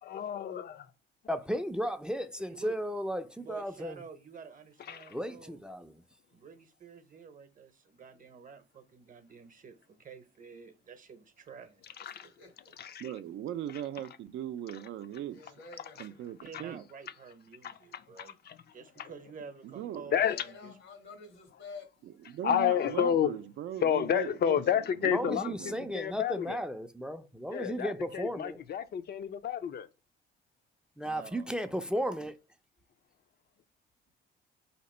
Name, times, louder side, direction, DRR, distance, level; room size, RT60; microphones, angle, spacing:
voice 1, 0.0-0.8 4.8-5.2 12.0-12.3 12.8-13.0 16.5-16.6 17.6-18.6 19.0-19.1 20.1-20.7 22.4-23.4 23.8-26.6 27.5-29.9, left 9 dB, 55° left, 0.5 m, -31 dB
voice 2, 1.3-4.0 5.1-6.0 25.1-28.6 31.0-32.4, equal, 5° right, 0.4 m, -35 dB
voice 3, 3.4-5.6 6.3-12.0 16.4-18.4 18.7-20.7 31.0-31.5, right 5 dB, 40° right, 0.8 m, -50 dB
voice 4, 12.1-12.8 15.3-16.3 20.2-21.9 26.1-26.5, left 4 dB, 90° left, 1.5 m, -50 dB
voice 5, 13.0-15.4 16.0-16.8 19.6-20.1 22.3-24.6 25.0-25.9, right 11 dB, 70° right, 0.4 m, -39 dB
4.3 x 2.9 x 4.2 m
cardioid pair, 90°, 20 cm